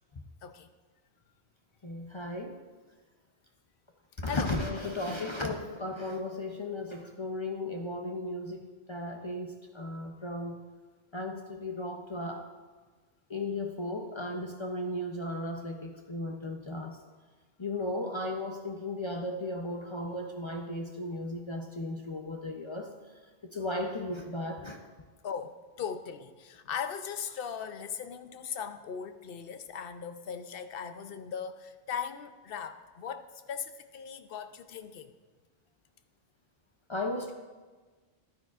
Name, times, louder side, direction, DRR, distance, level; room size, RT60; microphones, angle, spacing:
voice 1, 1.8-2.6 4.2-10.6 11.1-12.5 13.3-17.0 17.6-22.9 23.5-24.8 36.9-37.3, left 1 dB, 35° left, 2 dB, 0.6 m, -35 dB
voice 2, 25.2-35.1, left 7 dB, 70° left, 9 dB, 0.8 m, -39 dB
11.5 x 10.0 x 2.4 m, 1.4 s
omnidirectional pair, 1.0 m